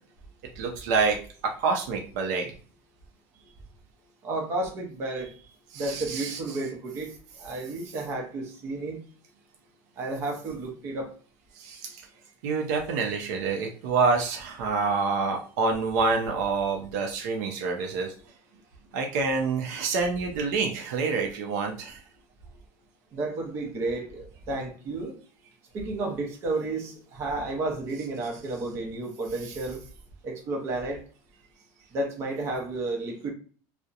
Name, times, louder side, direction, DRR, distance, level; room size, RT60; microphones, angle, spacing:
voice 1, 0.5-2.5 5.7-6.4 11.5-12.0 12.4-18.1 18.9-22.0 29.4-29.5, right 4 dB, 85° right, 2 dB, 0.6 m, -27 dB
voice 2, 4.2-5.3 5.7-9.0 10.0-11.1 23.1-25.1 25.7-29.8 30.2-31.0 31.9-33.3, right 2 dB, 30° right, 1 dB, 0.6 m, -32 dB
2.7 x 2.0 x 2.4 m, 0.42 s
cardioid pair, 175°, 9 cm